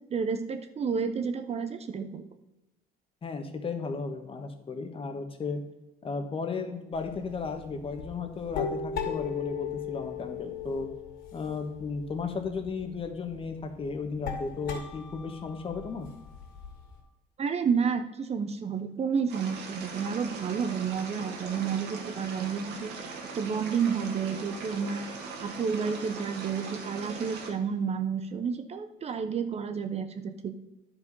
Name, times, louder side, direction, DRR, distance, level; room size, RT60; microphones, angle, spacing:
voice 1, 0.0-2.2 17.4-25.1 25.4-30.5, right 6 dB, 40° right, 9 dB, 0.7 m, -30 dB
voice 2, 3.2-5.6 6.0-10.9 11.3-16.1, left 4 dB, 35° left, 6 dB, 1.3 m, -34 dB
sound 1, 6.9-17.0, left 7 dB, 80° left, 2.5 m, -38 dB
sound 2, 19.3-27.5, right 4 dB, 85° right, 1.8 m, -40 dB
10.5 x 5.1 x 5.4 m, 0.99 s
cardioid pair, 110°, 17 cm